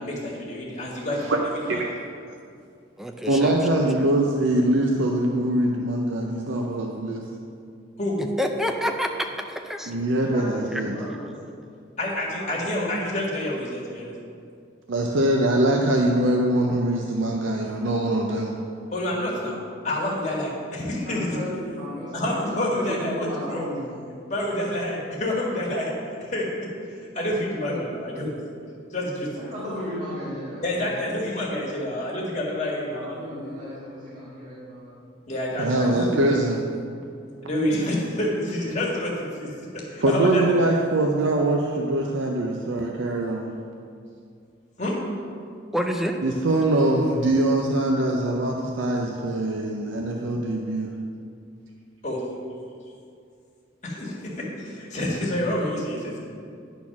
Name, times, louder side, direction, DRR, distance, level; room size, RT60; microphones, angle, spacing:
voice 1, 0.0-1.3 1.7-1.8 8.0-8.2 12.0-14.1 18.9-21.4 22.1-23.6 24.3-25.9 26.2-26.6 26.9-28.3 28.9-29.3 30.6-33.2 35.3-36.4 37.4-40.8 44.8-45.0 52.0-52.2 53.8-56.2, left 1 dB, 35° left, -4 dB, 1.8 m, -28 dB
voice 2, 1.3-1.8 3.2-7.2 9.9-10.9 14.9-18.5 35.6-36.6 40.0-43.5 46.2-50.9, right 1 dB, 80° right, 1 dB, 0.6 m, -23 dB
voice 3, 3.0-4.1 8.4-9.9 10.7-10.8 45.7-46.2, equal, ahead, 4 dB, 0.4 m, -28 dB
voice 4, 10.1-11.5 12.4-12.7 21.0-24.0 29.3-31.3 32.5-35.0 35.5-35.8 46.4-47.0, equal, 40° right, -12 dB, 2.0 m, -36 dB
10.0 x 4.2 x 5.8 m, 2.4 s
head